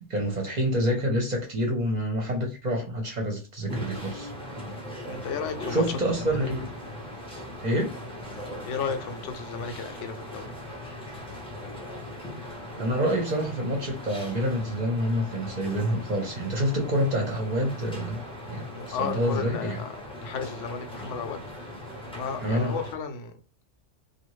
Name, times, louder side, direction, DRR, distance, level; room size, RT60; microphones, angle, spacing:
voice 1, 0.0-4.3 5.7-6.7 7.6-7.9 12.8-19.8 22.4-22.7, equal, 45° right, 0.7 m, -27 dB
sound 1, 3.7-22.9, left 1 dB, 5° left, 0.5 m, -39 dB
voice 2, 5.1-6.5 8.7-10.5 18.7-21.8 22.1-23.4, left 5 dB, 80° left, 0.9 m, -34 dB
2.7 x 2.4 x 3.0 m
omnidirectional pair, 1.2 m